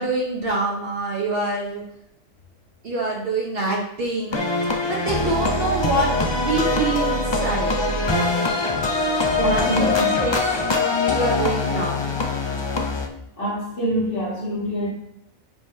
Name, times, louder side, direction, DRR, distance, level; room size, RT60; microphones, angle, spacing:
voice 1, 0.0-1.8 2.8-4.4 4.8-6.1 6.4-7.7 9.3-10.6 10.9-12.1, right 2 dB, 55° right, -3 dB, 1.2 m, -25 dB
sound 1, 4.3-13.1, left 2 dB, 30° left, 0.5 m, -23 dB
voice 2, 9.3-10.2 13.4-14.9, equal, 50° left, -6 dB, 2.3 m, -25 dB
9.5 x 5.1 x 2.8 m, 0.78 s
omnidirectional pair, 1.2 m